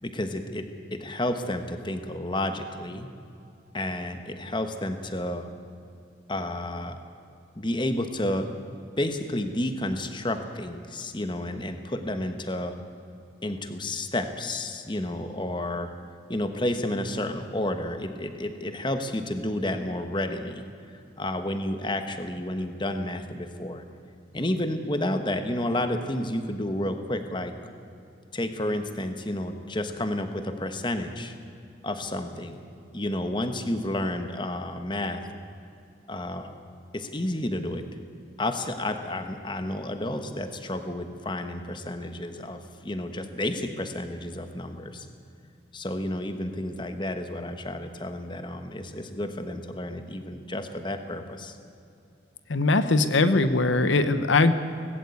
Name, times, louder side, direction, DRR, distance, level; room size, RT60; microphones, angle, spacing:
voice 1, 0.0-3.1 3.7-5.5 6.3-7.0 7.6-12.8 13.4-15.9 16.3-20.6 21.2-23.8 24.3-27.5 28.3-31.3 31.8-32.6 32.9-35.3 36.1-36.5 36.9-37.9 38.4-45.1 45.7-51.6, left 1 dB, 25° left, 8 dB, 1.2 m, -31 dB
voice 2, 52.5-54.5, left 3 dB, 80° left, 11 dB, 0.9 m, -21 dB
18.5 x 16.5 x 8.4 m, 2.6 s
head